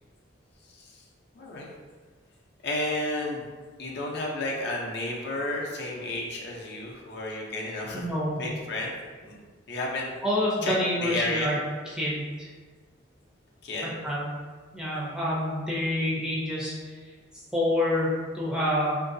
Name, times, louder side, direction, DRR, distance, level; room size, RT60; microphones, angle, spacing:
voice 1, 0.6-1.0 1.3-1.7 2.6-3.5 3.8-8.0 8.3-8.9 9.2-9.4 9.7-10.1 10.6-10.7 11.0-11.5 13.6-13.9, left 2 dB, 55° left, -2 dB, 0.5 m, -32 dB
voice 2, 7.9-8.4 10.2-11.6 11.9-12.5 14.0-14.3 14.7-16.9 17.5-18.1 18.3-19.0, left 1 dB, 5° right, -6 dB, 0.5 m, -27 dB
3.8 x 2.6 x 2.6 m, 1.5 s
head